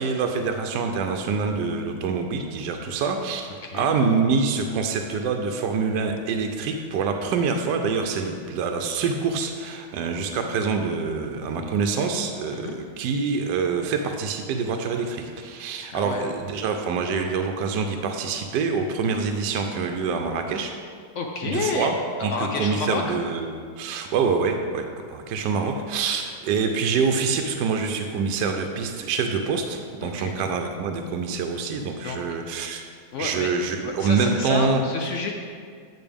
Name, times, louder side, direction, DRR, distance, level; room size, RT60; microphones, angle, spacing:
voice 1, 0.0-3.5 3.7-20.8 21.4-22.0 22.2-32.8 33.2-34.8, right 5 dB, 80° right, 4 dB, 1.2 m, -26 dB
voice 2, 15.9-16.3 21.1-23.2 30.0-30.4 32.0-32.4 33.1-33.5 33.8-35.3, left 4 dB, 70° left, 2 dB, 0.7 m, -30 dB
8.8 x 6.2 x 3.5 m, 2.1 s
omnidirectional pair, 1.8 m